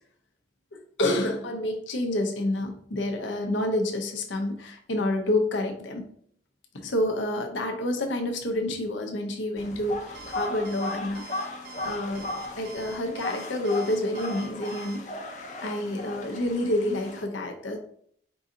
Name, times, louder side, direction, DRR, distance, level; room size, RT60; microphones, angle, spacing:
voice 1, 0.7-6.0 6.8-15.1 15.6-17.8, left 1 dB, 85° left, 4 dB, 0.7 m, -29 dB
sound 1, 9.6-17.2, left 2 dB, 40° left, 0.6 m, -37 dB
Alarm, 10.1-15.0, right 4 dB, 50° right, 0.8 m, -45 dB
4.7 x 2.7 x 3.6 m, 0.63 s
head